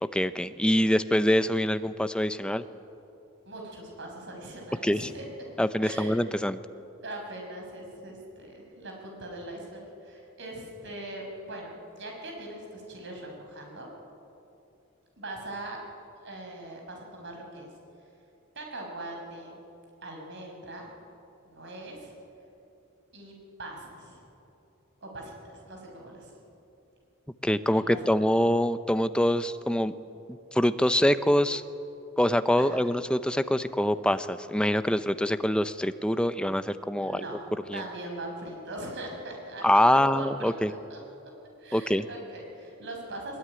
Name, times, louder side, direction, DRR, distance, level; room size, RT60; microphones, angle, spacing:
voice 1, 0.1-2.6 4.8-5.1 5.6-6.6 27.4-29.9 30.3-31.6 32.2-37.2 37.7-37.8 39.6-40.7 41.7-42.1, left 1 dB, 5° left, 11 dB, 0.7 m, -25 dB
voice 2, 3.4-5.3 5.6-6.2 7.0-13.9 15.2-15.8 16.2-17.7 18.5-19.6 20.0-20.9 21.5-22.1 23.1-24.2 25.0-26.3 27.7-28.2 32.6-32.9 37.0-37.4 37.7-41.0 41.6-43.4, right 1 dB, 60° right, 1 dB, 6.0 m, -41 dB
21.5 x 21.0 x 9.8 m, 2.8 s
head